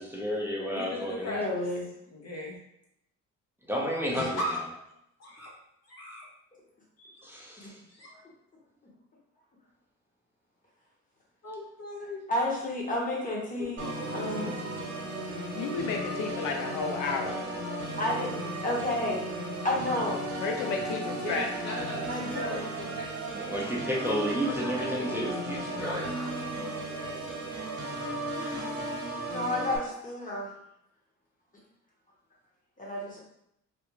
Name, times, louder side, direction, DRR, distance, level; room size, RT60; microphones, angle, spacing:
voice 1, 0.0-1.4 3.7-4.4 7.2-7.8 23.3-26.1, equal, 5° right, -4 dB, 0.7 m, -31 dB
voice 2, 0.6-1.6 2.1-2.6 4.1-4.6 5.2-5.5 5.9-6.2 7.0-7.2 7.9-8.1 11.4-12.2 13.6-13.9 14.4-14.7 21.2-23.4 24.4-27.3, left 1 dB, 60° left, -2 dB, 1.1 m, -39 dB
voice 3, 1.3-1.8 12.3-13.9 14.1-14.5 18.0-18.3 18.6-19.2 19.6-20.2 22.1-22.7 28.3-28.8 29.2-30.5 32.8-33.2, left 1 dB, 25° left, -4 dB, 1.2 m, -31 dB
Organ, 13.8-29.8, right 1 dB, 50° right, 1.0 m, -35 dB
voice 4, 15.5-17.4 20.4-21.5, left 5 dB, 85° left, 2 dB, 0.5 m, -32 dB
3.4 x 2.4 x 3.0 m, 0.80 s
cardioid pair, 90°, 30 cm